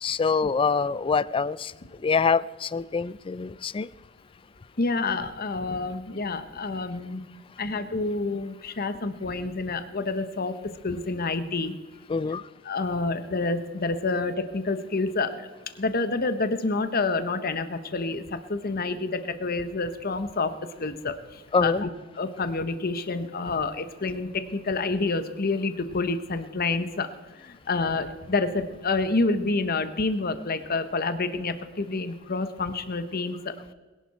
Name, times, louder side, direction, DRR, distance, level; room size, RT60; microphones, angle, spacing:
voice 1, 0.0-1.7 2.0-3.9 12.1-12.4 21.5-21.8, left 5 dB, 25° left, 19 dB, 0.3 m, -25 dB
voice 2, 4.8-7.2 7.6-11.7 12.6-15.5 15.7-20.5 20.8-21.9 22.1-27.1 27.3-33.5, left 3 dB, 45° left, 11 dB, 1.0 m, -28 dB
21.0 x 11.0 x 4.3 m, 1.2 s
head